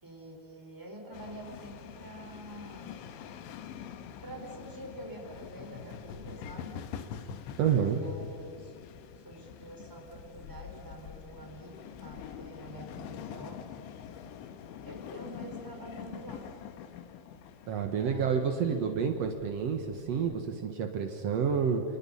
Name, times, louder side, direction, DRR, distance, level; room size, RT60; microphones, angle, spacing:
voice 1, 0.0-3.0 4.2-6.9 7.9-8.7 9.2-13.6 14.8-16.6 17.9-19.0, right 1 dB, 5° right, -1 dB, 4.7 m, -47 dB
sound 1, 1.1-20.4, left 8 dB, 90° left, 3.6 m, -45 dB
voice 2, 7.6-8.0 17.7-21.8, right 7 dB, 75° right, 4 dB, 1.4 m, -29 dB
29.5 x 27.5 x 5.7 m, 2.2 s
omnidirectional pair, 5.1 m